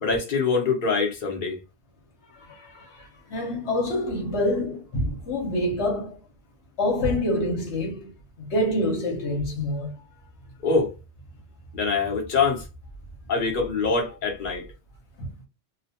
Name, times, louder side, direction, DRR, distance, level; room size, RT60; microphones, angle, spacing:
voice 1, 0.0-1.6 10.6-10.9 11.7-12.7 13.3-14.6, left 4 dB, 50° left, 1.1 m, -24 dB
voice 2, 2.4-6.2 6.8-8.1 8.4-9.9 15.2-15.3, left 1 dB, 75° left, 1.3 m, -26 dB
3.0 x 2.1 x 2.8 m
omnidirectional pair, 1.2 m